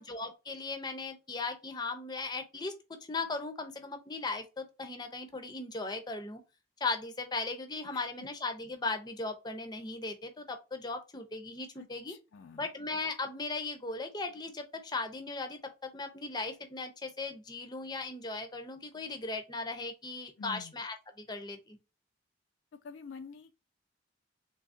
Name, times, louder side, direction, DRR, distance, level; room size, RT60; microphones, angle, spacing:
voice 1, 0.0-6.4 6.8-12.2 12.5-21.8, left 3 dB, 20° left, 0.6 m, -38 dB
voice 2, 7.9-8.3 11.8-12.7 20.4-20.7 22.7-23.6, left 5 dB, 65° left, 0.4 m, -48 dB
3.6 x 2.8 x 2.6 m
head